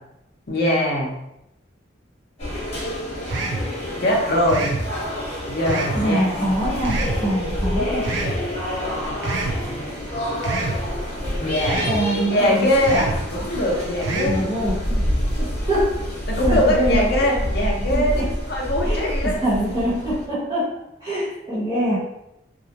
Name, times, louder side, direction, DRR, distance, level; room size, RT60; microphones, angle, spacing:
voice 1, 0.5-1.1 4.0-4.8 5.5-6.4 11.4-11.9 12.3-14.5 16.3-19.4, left 1 dB, 60° left, -2 dB, 0.6 m, -22 dB
sound 1, 2.4-20.2, equal, 35° left, 0.9 m, -27 dB
sound 2, 3.3-3.7 4.5-4.9 5.7-6.0 6.9-7.2 8.0-8.4 9.2-9.6 10.4-10.8 11.6-12.0 12.8-13.2 14.0-14.4, right 3 dB, 70° right, 0.4 m, -26 dB
voice 2, 5.9-8.0 11.9-12.5 14.2-15.0 15.4-16.0 16.4-17.0 17.9-18.3 18.8-22.0, right 1 dB, 25° right, -10 dB, 0.9 m, -24 dB
2.4 x 2.0 x 2.8 m, 0.85 s
head